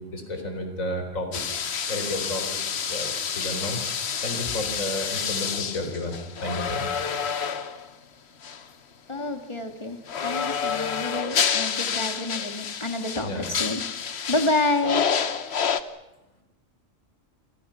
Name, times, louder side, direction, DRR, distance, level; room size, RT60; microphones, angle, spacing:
voice 1, 0.0-1.6 1.9-7.1 13.2-13.5 14.8-14.9, left 1 dB, 90° left, 6 dB, 4.4 m, -32 dB
sound 1, 1.3-7.9 8.4-8.6 10.1-15.8, left 7 dB, 55° left, 1.2 m, -29 dB
voice 2, 9.1-13.8 14.3-15.1, left 2 dB, 20° left, 6 dB, 2.2 m, -28 dB
29.0 x 25.0 x 5.9 m, 0.95 s
omnidirectional pair, 1.4 m